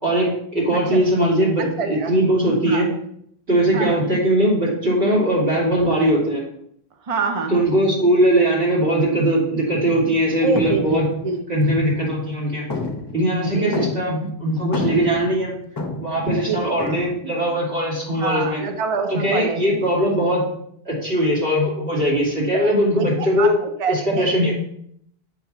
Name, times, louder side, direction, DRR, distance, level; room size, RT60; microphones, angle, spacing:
voice 1, 0.0-2.9 3.5-6.4 7.5-11.0 11.5-12.7 13.1-15.5 16.0-18.6 19.1-20.5 20.8-23.5 23.9-24.5, right 1 dB, 85° right, -6 dB, 3.0 m, -20 dB
voice 2, 1.6-2.1 2.7-2.9 3.7-4.0 7.0-7.7 10.4-11.0 11.2-11.4 13.4-13.9 16.4-16.7 18.2-19.6 22.5-24.4, right 4 dB, 40° right, 5 dB, 0.6 m, -26 dB
sound 1, 9.9-10.2 10.5-12.3 12.7-14.3 14.6-16.3 16.8-17.1, left 2 dB, 30° left, 0.7 m, -30 dB
7.6 x 2.7 x 5.9 m, 0.71 s
omnidirectional pair, 1.0 m